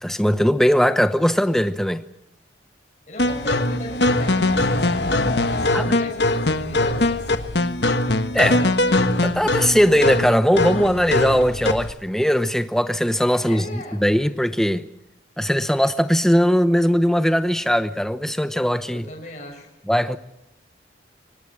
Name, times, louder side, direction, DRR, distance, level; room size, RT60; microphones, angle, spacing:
voice 1, 0.0-2.0 5.7-6.0 8.3-8.7 9.2-14.8 15.4-19.1 19.9-20.2, equal, ahead, 0.9 m, -19 dB
voice 2, 3.1-7.5 8.4-8.7 13.4-14.0 18.9-19.7, left 1 dB, 40° left, 6.6 m, -38 dB
sound 1, 3.2-11.9, left 2 dB, 65° left, 1.4 m, -21 dB
24.5 x 19.0 x 8.7 m
head